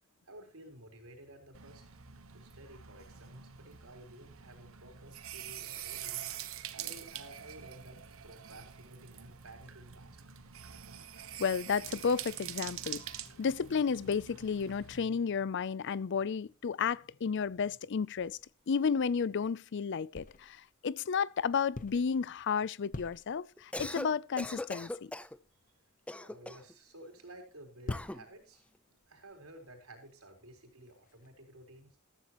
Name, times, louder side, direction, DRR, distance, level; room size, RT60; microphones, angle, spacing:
voice 1, 0.3-1.8 2.3-6.2 6.7-10.4 26.2-28.6 29.1-31.9, right 1 dB, 90° right, 4.3 m, -53 dB
sound 1, 1.5-15.0, right 10 dB, 70° right, 1.1 m, -45 dB
voice 2, 11.4-13.0 13.4-18.4 18.7-24.9, left 6 dB, 55° left, 0.5 m, -32 dB
sound 2, 17.2-19.7 20.1-20.8 21.4-22.4 22.7-23.8 24.4-24.5 24.8-31.3, left 2 dB, 40° left, 0.8 m, -47 dB
Cough, 23.6-24.1 24.4-25.4 26.1-26.7 27.9-28.2, left 1 dB, 5° left, 0.5 m, -40 dB
14.0 x 14.0 x 3.0 m
head